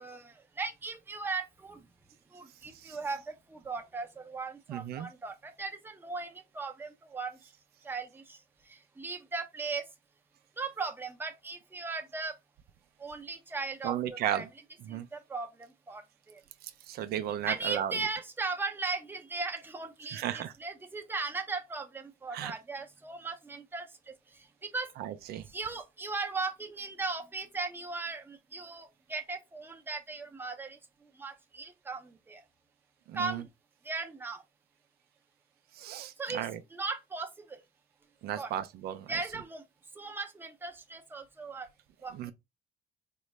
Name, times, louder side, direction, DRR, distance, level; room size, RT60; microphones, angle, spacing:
voice 1, 0.0-1.9 2.3-7.5 7.8-9.9 10.6-12.4 13.0-14.5 14.9-16.4 17.5-24.9 25.5-32.4 33.1-33.5 33.8-34.4 36.2-37.6 38.3-38.5 39.1-39.6 39.9-41.7 42.0-42.3, right 4 dB, 10° right, 0.6 m, -38 dB
voice 2, 4.7-5.1 13.8-14.4 14.9-15.1 16.6-18.0 20.1-20.5 22.3-22.5 25.0-25.5 33.1-33.4 35.7-36.6 38.2-39.1 42.1-42.3, right 11 dB, 70° right, 0.4 m, -35 dB
3.8 x 2.1 x 3.1 m
cardioid pair, 110°, 17 cm